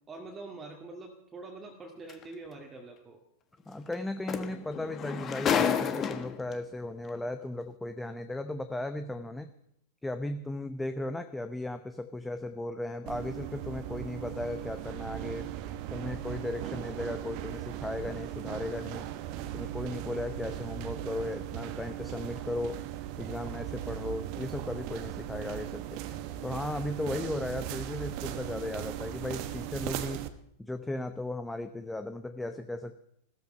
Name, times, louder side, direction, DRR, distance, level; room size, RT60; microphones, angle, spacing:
voice 1, 0.1-3.2, right 3 dB, 15° right, 1 dB, 2.0 m, -45 dB
sound 1, 2.1-2.2 3.9-4.0 4.3-6.5 7.5-7.6, left 8 dB, 25° left, 1.4 m, -30 dB
voice 2, 3.7-9.5 10.0-15.5 15.9-19.1 19.5-22.8 23.2-26.0 26.4-30.3 30.6-33.0, left 2 dB, 5° left, 9 dB, 0.9 m, -36 dB
sound 2, 13.1-30.3, right 12 dB, 45° right, 1.1 m, -38 dB
16.0 x 13.5 x 5.4 m, 0.75 s
figure-of-eight pair, 90°, 0 cm